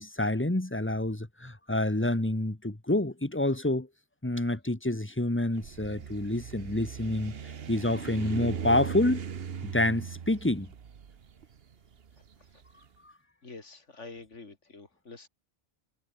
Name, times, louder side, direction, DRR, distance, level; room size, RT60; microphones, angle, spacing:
voice 1, 0.0-3.9 4.2-9.2 9.6-10.7 13.0-13.1, left 1 dB, 10° left, 1.7 m, -28 dB
sound 1, 5.5-12.7, right 7 dB, 55° right, 1.2 m, -39 dB
voice 2, 13.4-15.3, left 3 dB, 75° left, 3.3 m, -47 dB
omnidirectional pair, 1.2 m